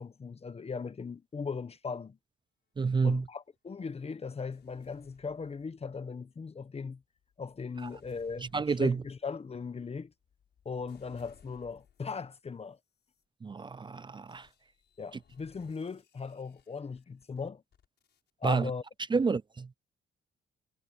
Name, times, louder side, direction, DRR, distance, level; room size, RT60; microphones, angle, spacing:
voice 1, 0.0-2.2 3.0-7.0 7.4-10.1 10.6-12.8 15.0-17.6 18.4-18.8, left 5 dB, 30° left, 1.1 m, -38 dB
voice 2, 2.8-3.2 8.5-9.0 13.4-14.5 18.4-18.7 19.1-19.7, right 4 dB, 25° right, 0.5 m, -28 dB
sound 1, 4.5-6.1 6.8-12.3 12.9-13.2 14.3-18.3, left 8 dB, 60° left, 6.3 m, -65 dB
cardioid pair, 90°, 20 cm